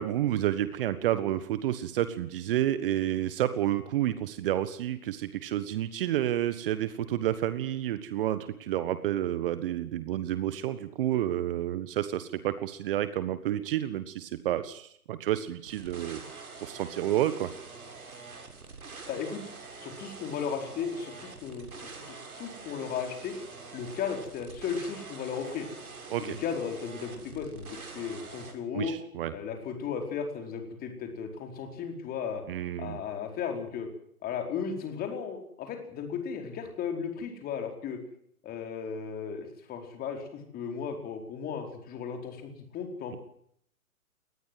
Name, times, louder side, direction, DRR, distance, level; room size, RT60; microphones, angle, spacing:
voice 1, 0.0-17.5 26.1-26.4 28.7-29.3 32.5-33.0, right 12 dB, 40° right, 13 dB, 1.6 m, -30 dB
sound 1, 15.6-28.5, right 4 dB, 70° right, 6.8 m, -45 dB
voice 2, 19.1-19.4 19.8-23.3 23.7-25.7 26.2-28.9 29.3-32.4 32.8-33.9 34.2-38.0 38.4-43.2, left 7 dB, 20° left, 4 dB, 4.8 m, -35 dB
23.5 x 19.5 x 7.9 m, 0.68 s
figure-of-eight pair, 130°, 44 cm